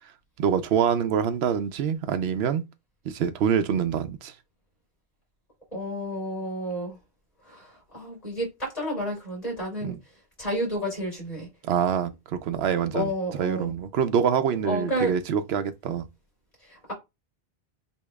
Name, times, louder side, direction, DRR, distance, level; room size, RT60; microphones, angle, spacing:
voice 1, 0.4-2.6 3.1-4.3 9.8-10.0 11.6-13.1 13.4-16.1, right 8 dB, 80° right, 0.8 m, -25 dB
voice 2, 5.7-7.0 7.4-9.9 10.4-11.5 12.9-13.7 14.6-15.1 16.6-16.9, equal, 40° left, 3.2 m, -30 dB
8.1 x 2.8 x 2.3 m
omnidirectional pair, 1.0 m